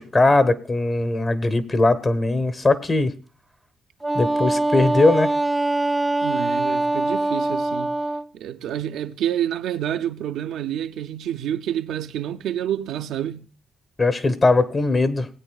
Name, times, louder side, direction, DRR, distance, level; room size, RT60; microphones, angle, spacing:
voice 1, 0.0-3.1 4.1-5.3 14.0-15.3, left 2 dB, 30° left, 1.0 m, -20 dB
Wind instrument woodwind instrument, 4.0-8.3, right 2 dB, 10° right, 0.4 m, -23 dB
voice 2, 6.2-7.9 8.3-13.5, right 10 dB, 80° right, 0.5 m, -28 dB
19.5 x 8.7 x 2.3 m
cardioid pair, 90°, 0 cm